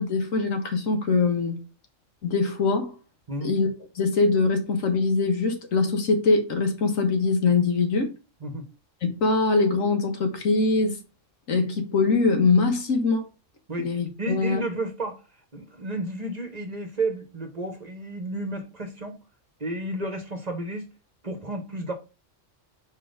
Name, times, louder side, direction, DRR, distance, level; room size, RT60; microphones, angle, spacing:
voice 1, 0.0-1.6 2.2-3.0 3.4-3.7 4.0-8.1 9.0-11.0 11.5-13.3 13.8-14.6, left 3 dB, 85° left, 1.7 m, -23 dB
voice 2, 14.2-15.2 15.5-19.2 19.6-20.9 21.2-21.9, right 1 dB, 35° right, 1.1 m, -32 dB
4.6 x 4.1 x 5.1 m
omnidirectional pair, 1.4 m